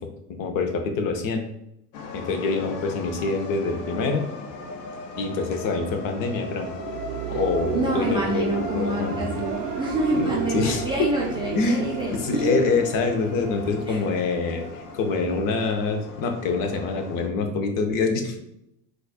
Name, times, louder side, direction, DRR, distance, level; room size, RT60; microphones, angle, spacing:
voice 1, 0.4-1.4 2.1-4.2 5.2-6.7 7.3-9.2 10.2-10.9 11.5-11.8 12.1-18.4, left 4 dB, 45° left, 5 dB, 0.6 m, -25 dB
sound 1, 1.9-17.3, left 3 dB, 80° left, 0.7 m, -38 dB
sound 2, 6.3-15.0, right 9 dB, 75° right, 0.5 m, -34 dB
voice 2, 7.7-12.5 13.9-14.0, right 1 dB, 10° right, -4 dB, 0.4 m, -27 dB
4.1 x 2.3 x 2.3 m, 0.82 s
hypercardioid pair, 95°, 48 cm